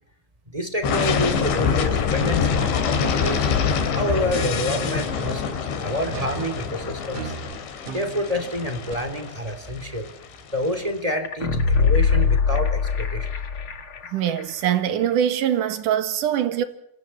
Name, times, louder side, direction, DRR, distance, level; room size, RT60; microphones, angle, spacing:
voice 1, 0.5-3.5 3.9-5.5 5.8-7.3 7.9-10.1 10.5-13.3, left 1 dB, 10° right, 1.8 m, -28 dB
sound 1, 0.8-10.7, left 6 dB, 75° left, 4.9 m, -25 dB
sound 2, 3.2-4.8 6.1-8.9, right 5 dB, 85° right, 5.0 m, -36 dB
sound 3, 11.2-14.1 14.4-14.5, left 5 dB, 50° left, 1.6 m, -21 dB
voice 2, 14.1-16.6, right 10 dB, 55° right, 2.6 m, -23 dB
28.0 x 27.5 x 4.4 m
omnidirectional pair, 5.3 m